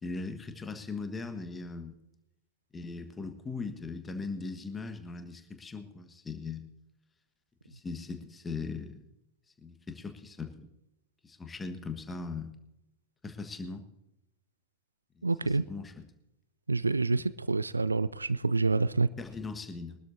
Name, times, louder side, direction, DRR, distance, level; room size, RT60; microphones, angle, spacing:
voice 1, 0.0-1.9 2.7-6.7 7.7-9.0 9.6-10.7 11.2-12.5 13.2-13.8 15.2-16.1 19.2-20.0, left 4 dB, 15° left, 1.4 m, -39 dB
voice 2, 15.2-15.6 16.7-19.1, right 3 dB, 80° right, 0.3 m, -27 dB
22.5 x 12.5 x 2.7 m
figure-of-eight pair, 90°, 0 cm